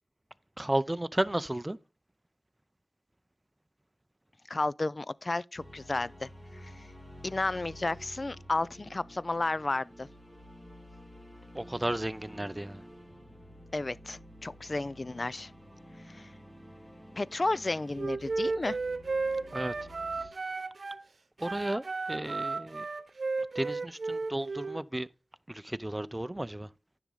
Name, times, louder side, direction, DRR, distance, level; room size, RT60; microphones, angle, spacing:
voice 1, 0.6-1.8 11.5-12.8 19.5-19.7 20.2-20.3 21.4-22.9 23.5-25.1 25.5-26.7, right 1 dB, 20° right, 0.6 m, -33 dB
voice 2, 4.5-6.3 6.6-6.9 7.2-10.1 13.7-15.5 16.1-16.3 17.2-18.8, left 2 dB, 45° left, 0.4 m, -32 dB
Gates of Heaven Music, 5.5-20.3, equal, 20° left, 2.5 m, -51 dB
Wind instrument woodwind instrument, 17.9-21.0 21.4-24.8, right 3 dB, 70° right, 0.9 m, -34 dB
10.0 x 6.2 x 3.9 m
cardioid pair, 50°, 0 cm